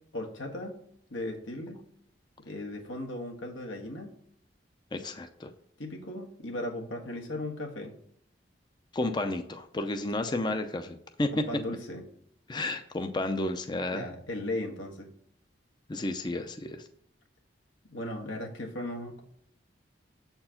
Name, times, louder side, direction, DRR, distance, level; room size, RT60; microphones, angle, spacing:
voice 1, 0.1-0.8 1.1-1.8 2.4-4.1 5.8-8.0 10.4-10.6 11.3-12.0 13.9-15.1 17.9-19.2, left 1 dB, 85° left, 1 dB, 1.5 m, -37 dB
voice 2, 4.9-5.5 8.9-11.3 12.5-14.1 15.9-16.8, left 2 dB, 25° left, 7 dB, 0.5 m, -32 dB
7.6 x 4.5 x 5.7 m, 0.69 s
head